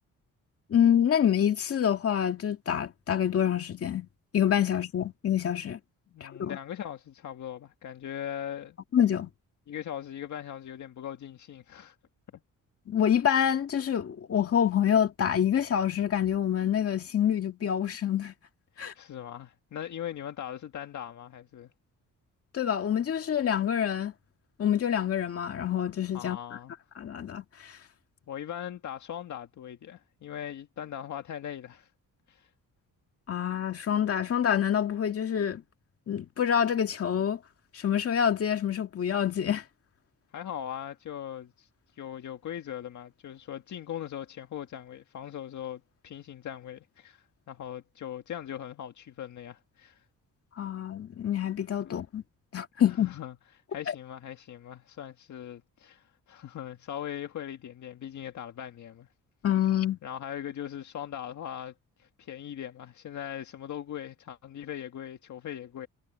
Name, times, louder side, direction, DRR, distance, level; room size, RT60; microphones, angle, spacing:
voice 1, 0.7-4.1 4.3-5.8 6.2-6.6 8.9-9.3 12.9-18.3 18.8-18.9 22.5-24.1 24.6-26.4 27.0-27.8 33.3-35.6 36.1-37.4 37.7-39.6 50.6-52.2 52.5-53.2 53.9-54.0 59.4-60.0, left 9 dB, 45° left, 2.1 m, -26 dB
voice 2, 6.1-8.8 9.7-12.0 18.8-21.7 26.1-26.7 28.3-31.9 32.3-32.5 40.3-41.7 42.0-50.0 52.9-53.3 53.7-59.1 60.0-61.7 62.0-65.9, left 10 dB, 60° left, 1.8 m, -40 dB
wide cardioid pair, 165°, 33 cm